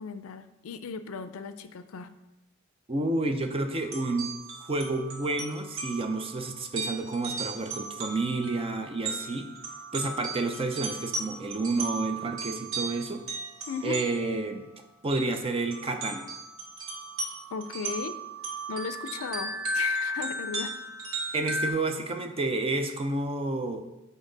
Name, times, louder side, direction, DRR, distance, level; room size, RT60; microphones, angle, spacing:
voice 1, 0.0-2.1 13.7-14.0 17.5-18.2 18.7-20.8, left 5 dB, 75° left, 11 dB, 0.4 m, -36 dB
voice 2, 2.9-4.3 4.6-9.5 9.9-13.2 13.8-14.7 15.0-16.3 21.3-23.8, right 2 dB, 25° right, 6 dB, 0.5 m, -30 dB
sound 1, 3.8-14.4 15.1-15.2 15.6-21.7, right 2 dB, 75° right, 1.2 m, -36 dB
7.3 x 4.0 x 3.9 m, 0.97 s
head